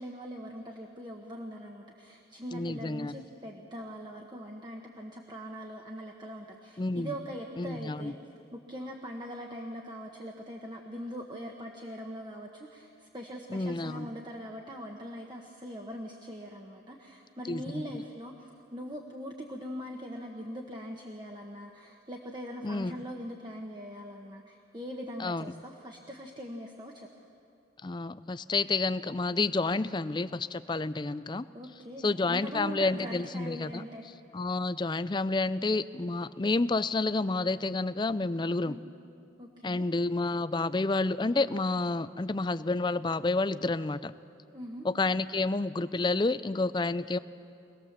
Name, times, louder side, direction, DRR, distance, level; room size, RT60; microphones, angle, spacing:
voice 1, 0.0-8.2 8.5-27.1 31.5-34.1 38.6-38.8 39.4-39.9 44.5-44.9, equal, 20° right, 1 dB, 1.1 m, -42 dB
voice 2, 2.5-3.1 6.8-7.1 7.6-8.1 13.5-14.1 17.5-18.0 22.6-22.9 25.2-25.4 27.8-31.4 32.0-33.8 34.3-38.7 39.6-44.1 44.8-47.2, left 3 dB, 25° left, 14 dB, 0.4 m, -29 dB
25.0 x 18.5 x 7.3 m, 2.6 s
head